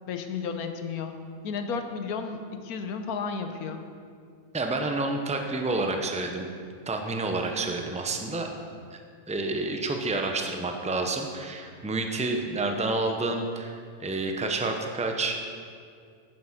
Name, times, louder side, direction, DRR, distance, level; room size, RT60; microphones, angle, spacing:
voice 1, 0.1-1.1 1.4-3.8, left 5 dB, 85° left, 7 dB, 1.4 m, -33 dB
voice 2, 4.5-6.5 6.9-8.5 8.9-9.0 9.3-15.4, right 2 dB, 5° right, 3 dB, 0.6 m, -29 dB
10.5 x 9.6 x 5.7 m, 2.2 s
omnidirectional pair, 1.5 m